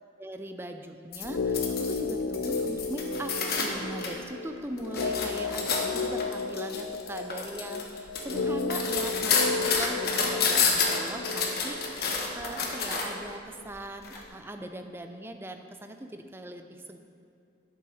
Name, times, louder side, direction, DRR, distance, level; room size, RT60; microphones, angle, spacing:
voice 1, 0.0-3.3 3.6-17.0, right 1 dB, 15° right, 6 dB, 0.5 m, -40 dB
sound 1, 1.1-4.1 4.6-13.2 14.0-14.2, left 5 dB, 55° left, 1.2 m, -29 dB
sound 2, 1.2-13.3 13.6-13.7, left 4 dB, 80° left, 0.5 m, -33 dB
11.5 x 8.5 x 4.2 m, 2.5 s
head